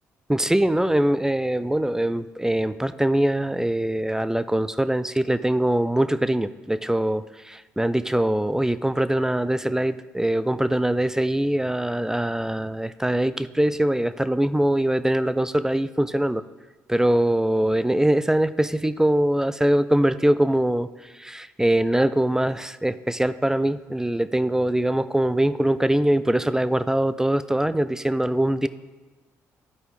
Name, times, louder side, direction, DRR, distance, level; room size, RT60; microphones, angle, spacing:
voice 1, 0.3-16.4 16.9-20.9 21.1-28.7, right 1 dB, 5° right, 13 dB, 0.3 m, -22 dB
12.0 x 4.8 x 3.2 m, 1.3 s
hypercardioid pair, 50°, 7 cm